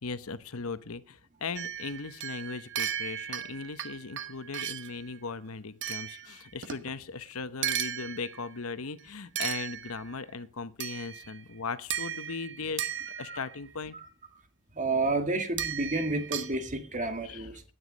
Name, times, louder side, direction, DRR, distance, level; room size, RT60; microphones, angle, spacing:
voice 1, 0.0-12.9 13.2-14.0 17.2-17.5, left 4 dB, 75° left, 13 dB, 1.0 m, -38 dB
sound 1, 1.6-5.0 5.8-6.9 7.6-8.6 9.4-10.2 10.8-11.4 11.9-13.6 15.6-16.6, right 9 dB, 60° right, 1.1 m, -36 dB
voice 2, 14.7-17.6, right 2 dB, 35° right, 7 dB, 2.0 m, -30 dB
16.0 x 10.0 x 5.2 m, 0.38 s
head